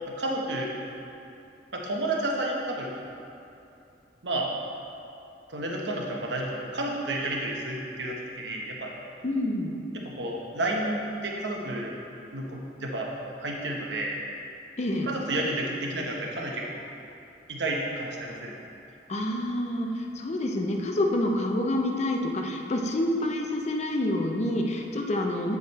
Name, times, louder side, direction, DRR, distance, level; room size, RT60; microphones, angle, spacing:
voice 1, 0.2-0.7 1.7-2.9 4.2-4.5 5.5-8.9 9.9-11.9 12.3-14.2 15.0-16.8 17.5-18.6, right 1 dB, 75° right, -1 dB, 1.0 m, -31 dB
voice 2, 9.2-9.8 14.8-15.1 19.1-25.6, left 1 dB, 40° left, 2 dB, 0.6 m, -27 dB
8.0 x 4.9 x 4.1 m, 2.7 s
head